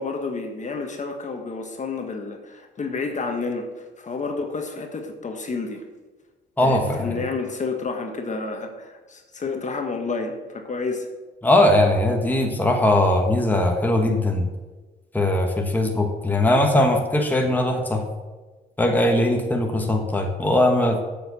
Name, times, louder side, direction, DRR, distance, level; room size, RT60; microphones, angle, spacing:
voice 1, 0.0-5.8 6.6-11.1, left 4 dB, 35° left, 4 dB, 1.5 m, -30 dB
voice 2, 6.6-7.2 11.4-14.5 15.1-18.0 18.8-21.0, left 1 dB, 10° left, 2 dB, 1.3 m, -20 dB
7.7 x 6.8 x 7.0 m, 1.3 s
cardioid pair, 90°, 20 cm